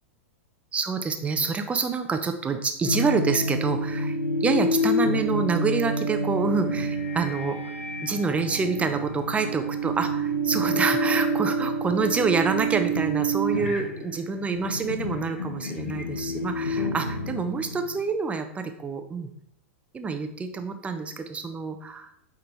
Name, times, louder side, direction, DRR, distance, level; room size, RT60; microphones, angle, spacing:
voice 1, 0.7-7.6 8.0-19.3 19.9-22.1, right 4 dB, 15° right, 7 dB, 0.9 m, -27 dB
sound 1, 2.8-18.0, right 1 dB, 85° left, 1.4 m, -28 dB
8.6 x 3.8 x 4.5 m, 0.71 s
hypercardioid pair, 105°, 7 cm